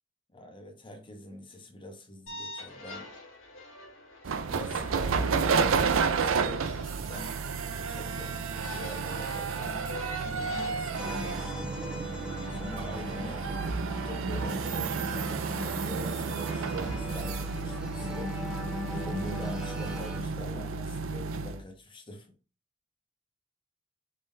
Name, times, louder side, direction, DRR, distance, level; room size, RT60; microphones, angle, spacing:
voice 1, 0.3-3.1 4.4-7.4 7.7-9.9 10.2-11.8 12.5-13.5 14.0-18.6 18.9-22.3, left 1 dB, 25° left, 1.1 m, -44 dB
sound 1, 2.3-12.6, left 2 dB, 85° left, 1.7 m, -46 dB
sound 2, 4.2-21.6, right 5 dB, 75° right, 0.5 m, -31 dB
sound 3, 10.9-20.2, left 1 dB, 5° right, 1.1 m, -39 dB
5.2 x 3.6 x 2.7 m
head